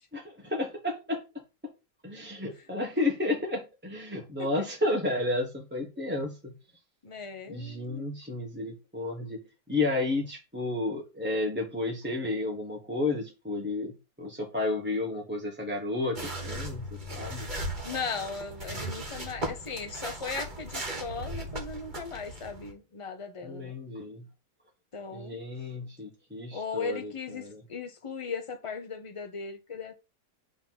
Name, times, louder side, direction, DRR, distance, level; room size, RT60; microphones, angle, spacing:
voice 1, 0.1-1.2 2.0-6.5 7.5-9.4 9.7-13.9 14.2-17.5 23.4-24.3 25.1-27.6, left 2 dB, 5° right, 1.1 m, -32 dB
voice 2, 7.0-8.1 17.8-23.7 24.9-25.4 26.5-30.0, left 5 dB, 30° left, 0.6 m, -37 dB
sound 1, 16.1-22.7, right 1 dB, 30° right, 1.6 m, -37 dB
5.5 x 3.8 x 5.9 m
omnidirectional pair, 1.8 m